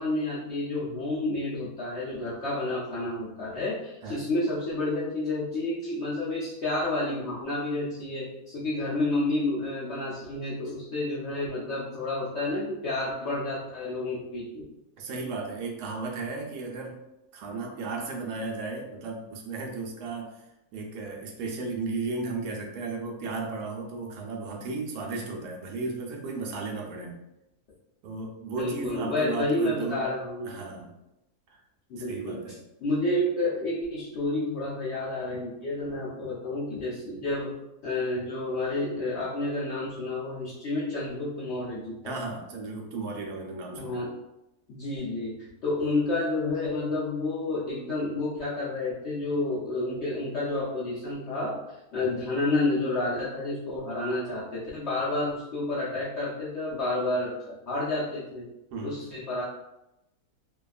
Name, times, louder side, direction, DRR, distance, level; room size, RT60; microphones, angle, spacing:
voice 1, 0.0-14.6 28.5-30.5 31.9-32.4 32.8-37.5 37.8-42.1 43.7-44.1 44.7-45.3 45.6-51.6 51.9-58.5 58.8-59.4, left 2 dB, 65° left, -7 dB, 0.6 m, -30 dB
voice 2, 15.0-17.0 17.3-27.1 28.0-30.0 30.4-30.9 31.5-31.6 32.0-32.6 42.0-44.1 58.7-59.0, right 3 dB, 80° right, 1 dB, 1.1 m, -35 dB
2.7 x 2.3 x 2.3 m, 0.90 s
omnidirectional pair, 1.7 m